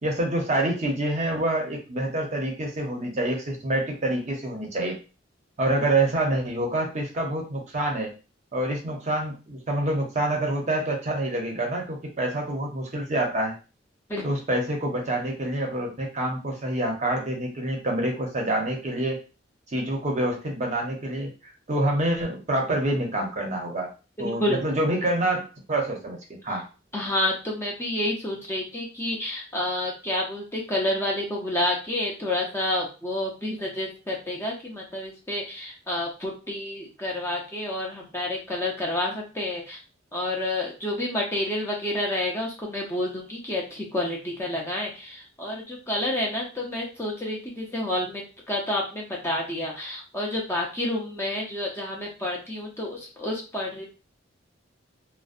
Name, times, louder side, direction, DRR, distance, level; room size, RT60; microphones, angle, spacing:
voice 1, 0.0-5.0 5.6-8.1 8.5-13.5 14.2-19.2 19.7-23.9 24.2-26.2 26.4-26.7, right 1 dB, 35° right, 1 dB, 0.6 m, -27 dB
voice 2, 24.2-24.6 26.9-39.8 40.1-53.8, left 1 dB, 15° left, -2 dB, 0.5 m, -29 dB
2.6 x 2.1 x 2.4 m, 0.33 s
head